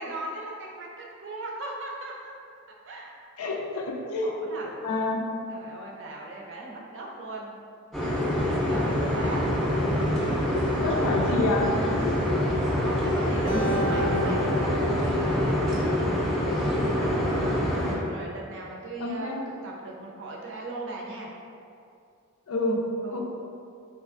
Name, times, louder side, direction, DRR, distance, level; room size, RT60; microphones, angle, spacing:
voice 1, 0.0-2.3 2.8-3.2 4.2-4.6 5.2-7.5 8.0-9.4 10.9-11.1 12.8-17.6 18.0-21.3 23.0-23.2, right 2 dB, 60° right, -2 dB, 0.5 m, -38 dB
voice 2, 3.4-4.3 4.8-5.2 10.8-12.1 13.5-14.3 19.0-19.5 22.5-22.9 23.1-23.2, left 2 dB, 80° left, 0 dB, 0.5 m, -28 dB
sound 1, 7.9-17.9, equal, ahead, 0.5 m, -25 dB
Acoustic guitar, 13.5-16.8, equal, 90° right, 0.8 m, -33 dB
3.3 x 3.0 x 2.5 m, 2.4 s
head